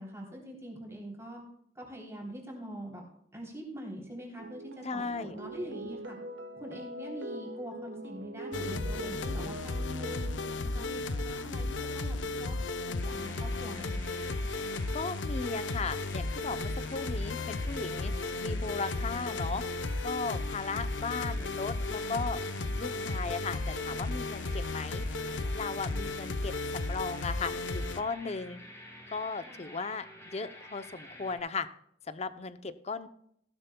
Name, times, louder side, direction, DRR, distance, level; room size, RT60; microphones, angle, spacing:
voice 1, 0.0-1.4 1.7-3.0 3.3-6.2 6.6-10.3 10.6-12.6 12.9-14.1 29.5-29.8, right 1 dB, 15° right, -2 dB, 3.3 m, -43 dB
sound 1, 4.4-10.6, right 1 dB, 90° right, 1.1 m, -43 dB
voice 2, 4.8-5.4 14.9-18.1 18.4-19.6 20.0-22.4 22.8-25.0 25.5-28.6 29.1-31.7 32.1-33.1, left 4 dB, 35° left, 12 dB, 0.6 m, -36 dB
sound 2, 8.5-28.0, left 2 dB, 85° left, 0.7 m, -34 dB
sound 3, 13.0-31.4, left 1 dB, 15° left, 4.6 m, -49 dB
15.5 x 12.5 x 2.3 m, 0.71 s
head